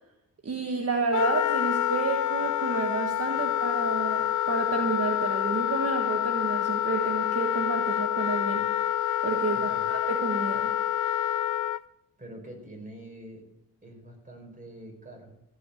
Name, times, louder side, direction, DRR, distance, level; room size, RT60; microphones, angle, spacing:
voice 1, 0.4-8.6 9.2-10.7, right 4 dB, 45° right, 4 dB, 1.4 m, -30 dB
Wind instrument woodwind instrument, 1.1-11.8, left 12 dB, 65° left, 0.5 m, -27 dB
voice 2, 9.5-9.9 12.2-13.4 13.8-15.3, right 1 dB, 25° right, 1 dB, 5.2 m, -45 dB
15.5 x 6.1 x 8.5 m, 0.86 s
cardioid pair, 85°, 33 cm